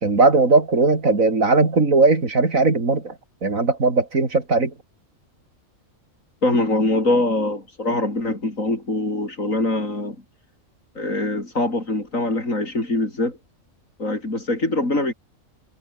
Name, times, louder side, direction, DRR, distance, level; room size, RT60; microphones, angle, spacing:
voice 1, 0.0-3.1 3.4-4.7, right 3 dB, 90° right, 4.0 m, -18 dB
voice 2, 6.4-10.2 10.9-13.4 14.0-15.1, left 2 dB, 80° left, 6.7 m, -23 dB
omnidirectional pair, 1.4 m